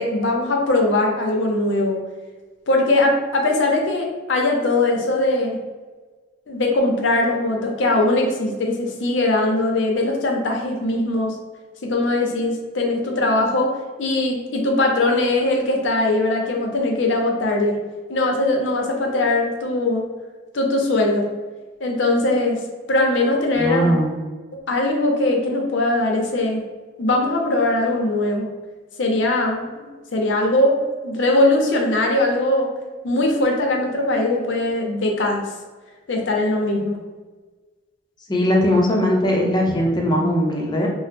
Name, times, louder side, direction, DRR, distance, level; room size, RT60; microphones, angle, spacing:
voice 1, 0.0-2.0 2.7-5.6 6.5-11.4 11.8-13.7 14.0-17.8 18.1-20.1 20.5-21.3 21.8-22.6 22.9-24.0 24.7-26.6 27.0-28.5 29.0-32.7 33.0-35.5 36.1-37.0, left 2 dB, 80° left, 1 dB, 0.6 m, -20 dB
voice 2, 23.5-24.1 38.3-40.9, equal, 25° left, -1 dB, 0.5 m, -19 dB
2.8 x 2.0 x 3.4 m, 1.3 s
head